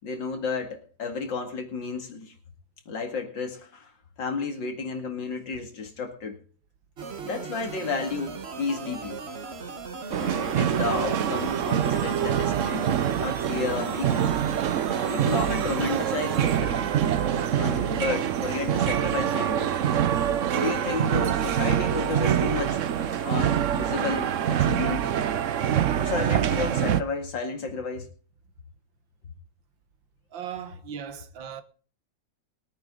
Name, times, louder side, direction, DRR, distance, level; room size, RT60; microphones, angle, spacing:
voice 1, 0.0-2.3 2.9-3.9 4.2-6.4 7.2-9.2 10.2-14.3 15.1-16.8 17.5-19.7 20.5-22.8 23.2-25.1 26.0-28.1, left 4 dB, 75° left, 2.8 m, -32 dB
sound 1, 7.0-16.6, right 4 dB, 40° right, 1.3 m, -38 dB
sound 2, 10.1-27.0, right 9 dB, 60° right, 0.8 m, -25 dB
voice 2, 30.3-31.6, right 8 dB, 85° right, 1.9 m, -37 dB
21.5 x 9.2 x 3.8 m
omnidirectional pair, 2.0 m